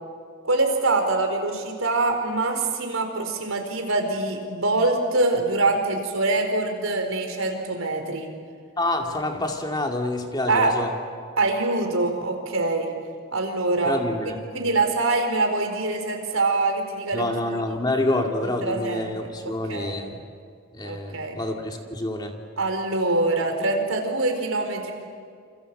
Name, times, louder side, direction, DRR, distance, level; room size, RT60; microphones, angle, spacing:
voice 1, 0.4-8.3 10.5-10.7 11.4-12.9 13.3-14.0 14.5-17.3 18.6-19.1 19.4-20.0 20.8-21.4 22.6-24.9, right 2 dB, 85° right, 4 dB, 4.6 m, -24 dB
voice 2, 8.8-10.9 13.8-14.4 17.1-20.2 20.7-22.3, left 1 dB, 20° left, 3 dB, 2.3 m, -27 dB
28.5 x 26.5 x 7.8 m, 2.2 s
head